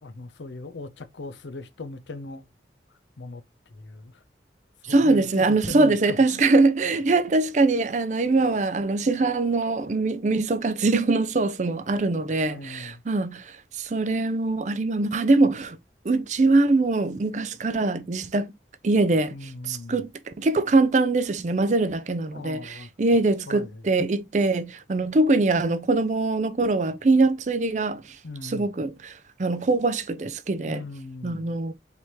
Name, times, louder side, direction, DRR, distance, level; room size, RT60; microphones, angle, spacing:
voice 1, 0.0-2.5 3.2-3.4 3.7-4.2 4.9-6.5 12.5-13.0 19.3-20.0 22.3-22.9 23.5-23.8 28.2-28.7 30.6-31.6, left 3 dB, 90° left, 0.6 m, -39 dB
voice 2, 4.9-15.8 16.0-18.5 18.8-19.3 19.7-28.2 28.4-30.8 31.2-31.7, right 3 dB, 40° right, 0.4 m, -23 dB
4.4 x 3.4 x 2.9 m
head